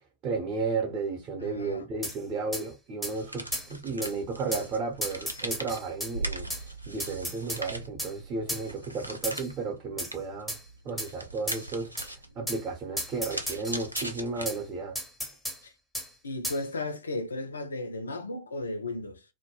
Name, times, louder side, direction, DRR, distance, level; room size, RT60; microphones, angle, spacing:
voice 1, 0.2-10.6 10.8-15.0, right 4 dB, 35° right, 0.7 m, -33 dB
voice 2, 1.4-1.9 15.6-15.7 16.2-19.2, left 2 dB, 75° left, 0.4 m, -35 dB
sound 1, 2.0-2.2 2.5-2.6 3.0-3.1 3.5-3.7 4.0-4.1 4.5-4.7 5.0-6.1 6.5-6.6 7.0-7.6 8.0-8.1 8.5-8.6 9.2-9.5 10.0-10.1 10.5-10.6 11.0-11.1 11.5-11.6 12.0-12.1 12.5-12.6 13.0-14.1 14.4-14.6 14.9-15.6 15.9-16.1 16.4-16.6, equal, ahead, 0.6 m, -34 dB
sound 2, 3.1-14.9, right 2 dB, 85° right, 0.4 m, -40 dB
2.2 x 2.1 x 2.9 m
figure-of-eight pair, 90°, 0 cm